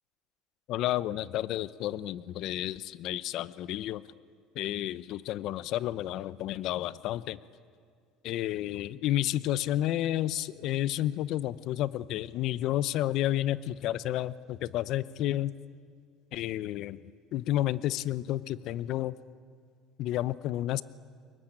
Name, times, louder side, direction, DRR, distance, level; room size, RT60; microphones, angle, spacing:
voice 1, 0.7-4.0 4.6-7.4 8.2-15.5 16.3-17.0 17.3-19.2 20.0-20.8, left 13 dB, 55° left, 17 dB, 0.7 m, -31 dB
30.0 x 22.0 x 8.9 m, 2.2 s
cardioid pair, 145°, 0 cm